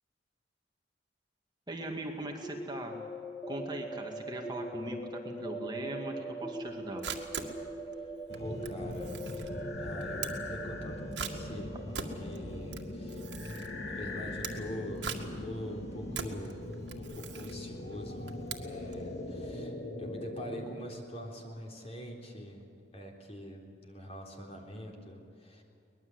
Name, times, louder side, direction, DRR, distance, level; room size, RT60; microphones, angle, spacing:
voice 1, 1.7-3.0 3.5-7.1 16.1-16.2, right 1 dB, 25° right, 1 dB, 2.1 m, -40 dB
sound 1, 2.4-14.1, right 1 dB, 15° left, 0.9 m, -42 dB
Camera, 6.6-19.1, right 6 dB, 75° right, 2.0 m, -43 dB
sound 2, 8.3-20.8, left 2 dB, 75° left, 2.3 m, -41 dB
voice 2, 8.4-9.4 9.8-11.7 12.2-13.2 13.9-22.6 22.9-25.6, equal, 35° left, 1 dB, 3.7 m, -44 dB
23.5 x 20.0 x 8.0 m, 2.7 s
head